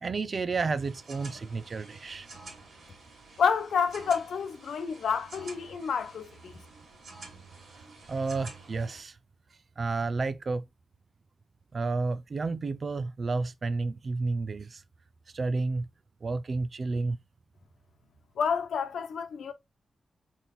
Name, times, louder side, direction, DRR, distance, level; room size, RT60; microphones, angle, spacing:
voice 1, 0.0-2.3 8.1-9.2 9.8-10.6 11.7-14.8 15.3-15.9 16.2-17.2, right 3 dB, 50° right, 0.6 m, -31 dB
sound 1, 0.7-9.0, right 3 dB, 75° right, 2.8 m, -49 dB
voice 2, 3.4-6.6 18.4-19.5, left 6 dB, 90° left, 1.0 m, -29 dB
4.3 x 4.3 x 5.4 m
cardioid pair, 75°, 0 cm